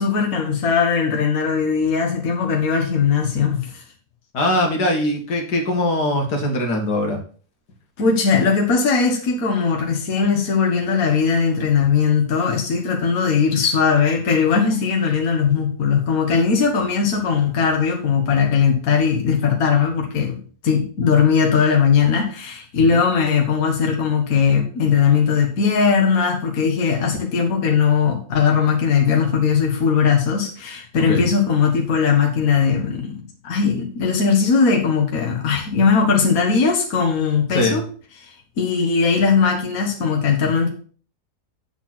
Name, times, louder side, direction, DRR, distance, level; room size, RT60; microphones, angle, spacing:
voice 1, 0.0-3.8 8.0-20.4 20.6-37.8 38.2-38.3 38.6-40.7, left 6 dB, 60° left, 2 dB, 1.6 m, -19 dB
voice 2, 4.3-7.2 22.9-23.0 31.0-31.3 37.5-37.8, left 1 dB, 80° left, 2 dB, 2.2 m, -21 dB
8.0 x 4.1 x 6.0 m, 0.42 s
omnidirectional pair, 1.8 m